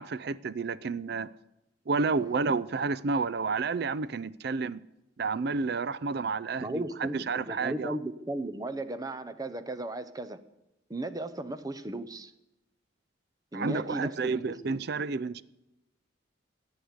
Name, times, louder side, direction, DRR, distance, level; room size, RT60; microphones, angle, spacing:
voice 1, 0.0-1.3 1.9-4.8 5.2-8.0 13.5-15.4, right 4 dB, 55° right, 0.4 m, -30 dB
voice 2, 6.6-10.4 10.9-12.3 13.5-14.5, right 1 dB, 20° right, 0.7 m, -36 dB
16.5 x 6.6 x 9.5 m
head